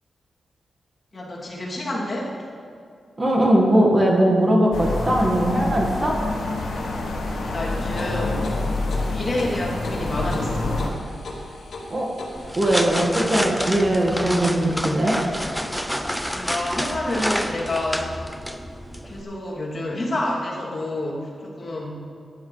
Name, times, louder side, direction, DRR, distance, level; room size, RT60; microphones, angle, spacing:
voice 1, 1.1-2.3 7.3-8.5 8.8-10.8 16.3-18.1 19.0-22.0, left 1 dB, 35° left, -6 dB, 2.8 m, -28 dB
voice 2, 3.2-6.2 11.9-12.1 12.5-15.2, right 1 dB, 30° right, -1 dB, 1.7 m, -20 dB
sound 1, 4.7-10.9, left 2 dB, 90° left, 2.0 m, -27 dB
sound 2, 7.6-13.0, left 2 dB, 70° left, 2.5 m, -38 dB
sound 3, 12.4-19.2, equal, ahead, 0.6 m, -28 dB
15.0 x 10.5 x 3.3 m, 2.3 s
wide cardioid pair, 100°, 0 cm